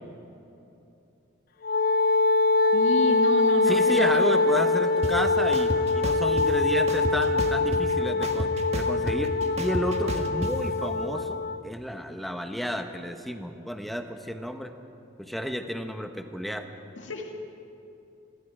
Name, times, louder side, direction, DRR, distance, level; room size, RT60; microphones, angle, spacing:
Wind instrument woodwind instrument, 1.6-11.6, left 3 dB, 45° left, 0.4 m, -24 dB
voice 1, 2.7-4.4 17.0-17.3, left 1 dB, 75° left, 2 dB, 2.3 m, -31 dB
voice 2, 3.7-11.4 11.6-14.7 15.2-16.7, equal, ahead, 6 dB, 1.1 m, -31 dB
sound 1, 5.0-5.1 5.5-6.5 6.9-7.9 8.2-10.5, right 1 dB, 35° right, 1.7 m, -31 dB
27.5 x 23.5 x 5.1 m, 2.9 s
head